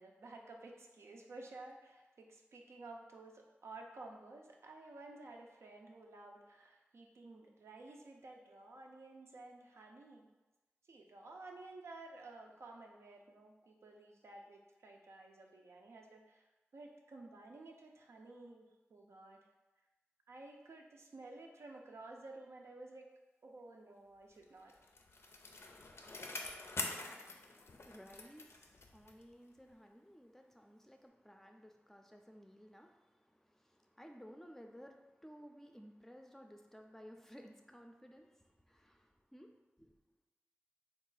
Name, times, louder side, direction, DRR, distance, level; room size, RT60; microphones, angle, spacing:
voice 1, 0.0-10.3 10.9-16.5 16.7-19.4 20.3-23.1 23.4-24.7, right 2 dB, 90° right, 1 dB, 0.5 m, -53 dB
Bicycle, 24.4-29.3 29.7-29.8, left 3 dB, 70° left, 0.4 m, -46 dB
voice 2, 27.3-39.5 39.8-40.2, equal, 10° left, 3 dB, 0.4 m, -57 dB
3.6 x 2.4 x 3.9 m, 1.1 s
wide cardioid pair, 65°, 4 cm